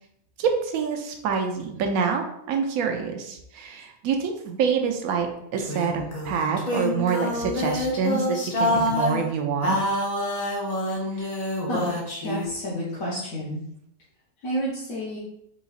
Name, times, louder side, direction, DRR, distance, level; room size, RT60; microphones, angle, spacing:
voice 1, 0.4-9.8, right 6 dB, 80° right, 3 dB, 1.0 m, -26 dB
sound 1, 5.6-9.2 9.6-12.5, left 1 dB, 35° left, 0.7 m, -27 dB
voice 2, 11.3-11.9 12.2-13.6 14.4-15.2, equal, 75° left, -8 dB, 1.3 m, -30 dB
3.9 x 3.8 x 2.4 m, 0.76 s
omnidirectional pair, 1.5 m